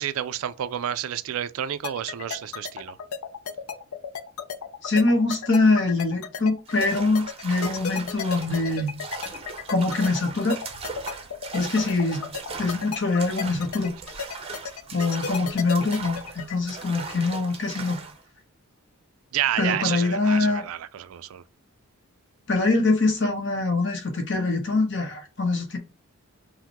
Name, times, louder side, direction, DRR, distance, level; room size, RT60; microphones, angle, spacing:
voice 1, 0.0-3.0 19.3-21.4, right 10 dB, 70° right, 0.3 m, -30 dB
sound 1, 1.8-16.6, left 7 dB, 70° left, 0.5 m, -33 dB
voice 2, 4.8-8.9 9.7-10.6 11.5-12.2 12.6-13.9 14.9-18.0 19.6-20.6 22.5-25.8, left 3 dB, 50° left, 1.0 m, -23 dB
sound 2, 6.7-18.2, right 4 dB, 25° right, 0.6 m, -39 dB
5.7 x 2.1 x 2.9 m
head